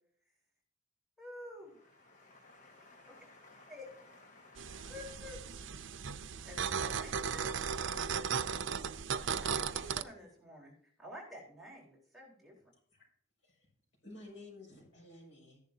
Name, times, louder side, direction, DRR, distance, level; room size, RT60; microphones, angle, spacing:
voice 1, 1.2-1.8 3.7-3.8 4.9-5.4 6.5-7.5 7.8-8.5 9.4-10.7 11.0-12.5, left 1 dB, ahead, -4 dB, 4.0 m, -50 dB
voice 2, 1.8-5.2, left 2 dB, 40° left, 1 dB, 1.5 m, -59 dB
sound 1, 4.6-10.0, right 6 dB, 80° right, 0.6 m, -36 dB
voice 3, 14.0-15.6, left 2 dB, 80° left, -1 dB, 5.9 m, -53 dB
14.5 x 11.0 x 2.8 m, 0.62 s
head